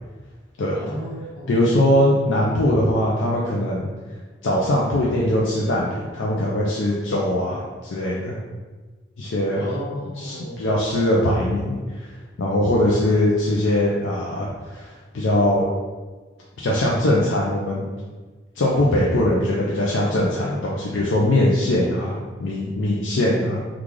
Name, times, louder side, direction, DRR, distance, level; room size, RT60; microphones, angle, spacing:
voice 1, 0.7-1.8 9.5-10.5, equal, 55° left, -7 dB, 1.1 m, -33 dB
voice 2, 1.5-3.9 4.4-8.4 9.2-9.6 10.1-12.1 12.4-15.7 16.6-17.8 18.6-23.7, left 1 dB, 80° left, -4 dB, 0.5 m, -21 dB
3.1 x 2.3 x 3.7 m, 1.3 s
head